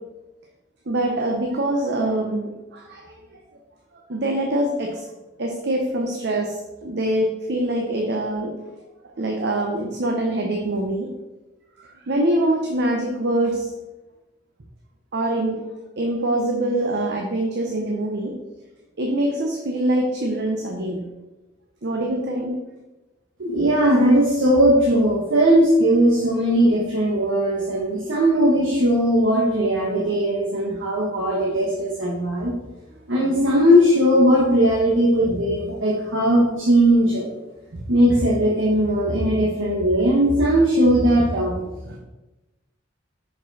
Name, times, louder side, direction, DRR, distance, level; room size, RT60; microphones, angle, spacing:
voice 1, 0.9-3.4 3.9-5.0 5.4-8.5 8.8-8.9 9.2-11.1 11.8-13.7 15.1-15.6 16.0-18.4 19.0-21.0 21.8-22.6 41.9-42.0, right 1 dB, 60° right, 1 dB, 0.7 m, -24 dB
voice 2, 23.4-32.5 33.1-37.3 37.9-41.6, equal, 85° right, -3 dB, 1.2 m, -18 dB
6.1 x 5.0 x 4.0 m, 1.1 s
head